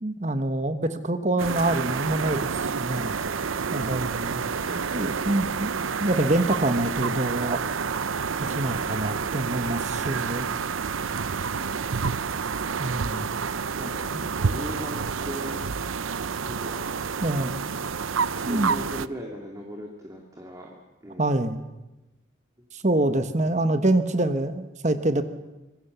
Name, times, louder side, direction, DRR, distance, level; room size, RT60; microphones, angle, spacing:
voice 1, 0.0-4.4 4.9-5.7 6.0-7.6 8.4-10.5 12.8-13.3 14.1-14.2 17.2-17.5 18.4-18.7 21.2-21.6 22.7-25.2, right 1 dB, 35° right, 10 dB, 1.3 m, -26 dB
sound 1, 1.4-19.1, right 5 dB, 80° right, 0.7 m, -29 dB
voice 2, 4.6-4.9 13.7-15.6 16.4-16.8 18.3-20.7 21.0-21.3 23.4-23.6, equal, 15° right, 0 dB, 2.6 m, -39 dB
26.0 x 21.5 x 6.9 m, 1.0 s
head